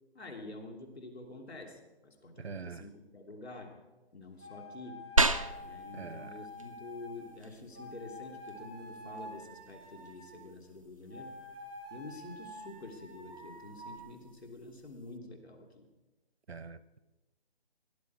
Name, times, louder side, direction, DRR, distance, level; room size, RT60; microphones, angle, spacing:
voice 1, 0.1-3.7 4.1-5.0 5.6-11.4 11.9-15.9, left 2 dB, 90° left, 3 dB, 3.1 m, -47 dB
voice 2, 2.4-2.9 5.9-6.4 16.5-17.0, right 5 dB, 85° right, 16 dB, 0.9 m, -44 dB
sound 1, 4.4-7.3 7.7-10.4 11.1-14.0, left 1 dB, 10° left, 0.8 m, -48 dB
sound 2, 5.2-15.2, right 2 dB, 35° right, 0.4 m, -37 dB
17.0 x 11.5 x 4.7 m, 1.1 s
hypercardioid pair, 170°, 31 cm